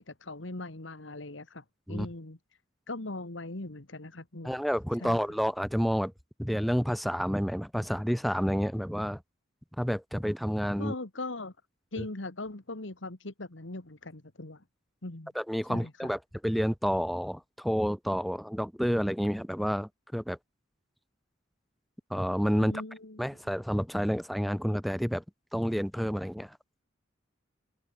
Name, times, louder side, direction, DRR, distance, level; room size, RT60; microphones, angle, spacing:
voice 1, 0.0-2.4 2.9-4.5 5.0-5.2 10.8-11.5 11.9-14.6 15.0-15.3 15.7-15.9 22.6-23.3, left 2 dB, 75° left, 2.0 m, -40 dB
voice 2, 4.4-6.1 6.4-9.2 9.8-10.9 12.0-12.1 15.3-20.4 22.1-22.8 23.2-25.2 25.5-26.6, equal, ahead, 0.7 m, -29 dB
open air
head